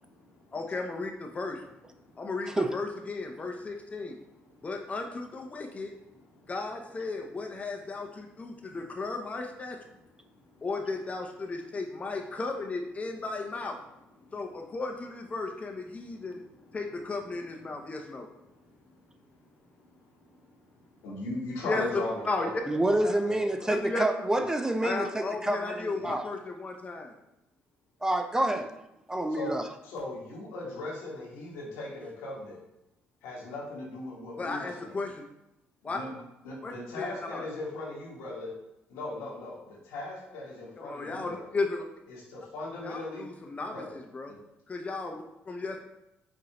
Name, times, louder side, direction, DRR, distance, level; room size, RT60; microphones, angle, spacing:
voice 1, 0.5-1.6 2.2-4.2 4.6-5.9 6.5-9.8 10.6-13.8 14.3-16.4 16.7-18.3 21.6-22.5 23.7-24.0 24.8-27.1 34.4-35.2 35.8-36.0 36.6-37.5 40.8-41.8 42.8-44.3 44.7-45.8, left 3 dB, 30° left, 3 dB, 0.6 m, -35 dB
voice 2, 2.0-2.3 4.0-4.7 5.5-6.5 8.3-8.8 9.9-10.7 14.2-14.7 15.9-16.8 17.6-23.7 24.4-24.5 26.0-26.1 28.5-28.6 29.3-29.5 29.8-32.6 33.2-35.0 35.8-38.5 38.9-41.6 42.1-43.3 43.6-44.0 44.3-44.4, left 2 dB, 90° left, -4 dB, 1.3 m, -40 dB
voice 3, 22.7-26.3 28.0-28.8 29.1-29.7, right 1 dB, 15° right, 6 dB, 0.4 m, -28 dB
5.0 x 2.7 x 2.9 m, 0.87 s
supercardioid pair, 70°, 4 cm